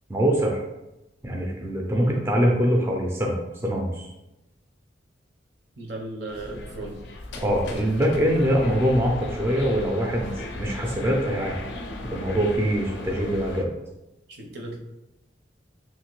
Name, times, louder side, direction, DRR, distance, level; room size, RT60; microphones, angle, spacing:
voice 1, 0.1-0.6 1.2-3.4 3.6-4.1 7.4-11.6 12.1-13.7, equal, 15° right, -1 dB, 0.3 m, -23 dB
voice 2, 5.8-7.0 14.3-14.9, right 2 dB, 65° right, 0 dB, 0.6 m, -36 dB
sound 1, 6.3-13.6, left 1 dB, 70° left, 0.4 m, -36 dB
2.8 x 2.5 x 3.0 m, 0.95 s
head